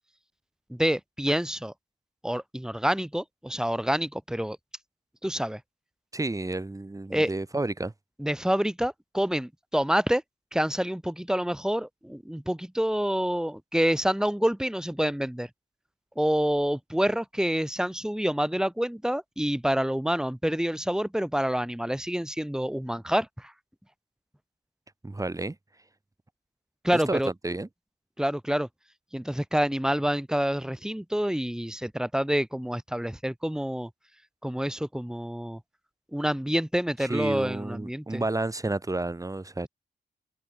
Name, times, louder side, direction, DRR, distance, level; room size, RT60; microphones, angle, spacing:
voice 1, 0.7-1.7 2.2-4.6 5.2-5.6 7.1-7.3 8.2-10.2 10.5-15.5 16.2-23.5 26.8-27.3 28.2-28.7 29.1-33.9 34.4-35.6 36.1-38.2, equal, 5° right, 6.2 m, -27 dB
voice 2, 6.1-7.9 25.0-25.6 26.9-27.7 37.0-39.7, right 2 dB, 20° right, 2.7 m, -31 dB
cardioid pair, 60°, 17 cm